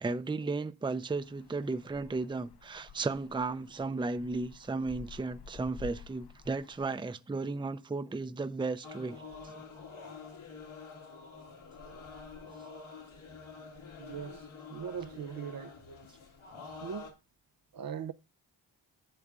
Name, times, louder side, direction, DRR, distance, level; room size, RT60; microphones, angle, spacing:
voice 1, 0.0-9.5, right 3 dB, 10° right, 0.5 m, -35 dB
sound 1, 1.1-6.9, left 5 dB, 60° left, 0.9 m, -51 dB
sound 2, 8.8-17.1, left 4 dB, 80° left, 2.4 m, -48 dB
voice 2, 14.0-15.7 16.8-17.1 17.7-18.1, right 7 dB, 50° right, 0.6 m, -40 dB
11.0 x 7.9 x 2.4 m
supercardioid pair, 40°, 46 cm